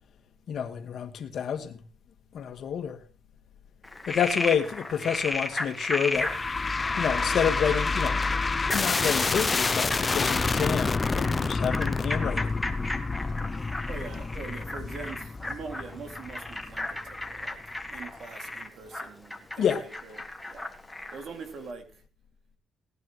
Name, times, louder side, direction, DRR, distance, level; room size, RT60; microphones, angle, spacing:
voice 1, 0.5-1.8 2.3-3.0 4.1-6.3 7.0-8.2 8.7-12.5 19.6-19.8, left 8 dB, 60° left, 1.9 m, -29 dB
Frog, 3.8-21.3, left 2 dB, 5° left, 1.8 m, -35 dB
sound 1, 6.2-17.4, left 3 dB, 25° left, 0.6 m, -28 dB
voice 2, 13.9-17.6 17.9-20.2 20.5-20.7 21.1-22.0, right 5 dB, 65° right, 2.8 m, -43 dB
18.0 x 11.0 x 3.3 m
cardioid pair, 90°, 0 cm